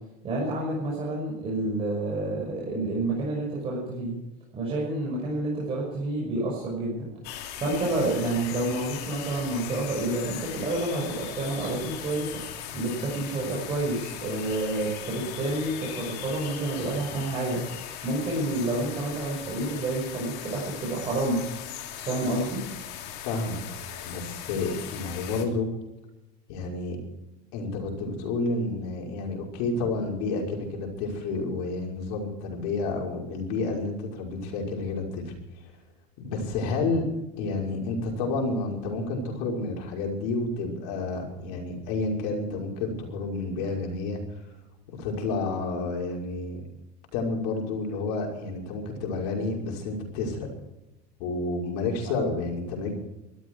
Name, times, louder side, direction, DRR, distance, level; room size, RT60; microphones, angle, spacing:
voice 1, 0.2-4.2 4.5-7.1 7.6-17.6 18.0-21.4 22.1-22.6, right 2 dB, 25° right, -4 dB, 5.7 m, -29 dB
sound 1, 7.2-25.5, left 10 dB, 50° left, 2.8 m, -39 dB
voice 2, 23.2-23.6 24.0-25.7 26.5-27.0 27.5-35.3 36.2-37.0 37.4-44.2 44.9-46.6 47.1-50.5 51.2-52.9, left 3 dB, 70° left, 1 dB, 5.7 m, -30 dB
21.0 x 13.5 x 4.8 m, 0.96 s
cardioid pair, 165°, 21 cm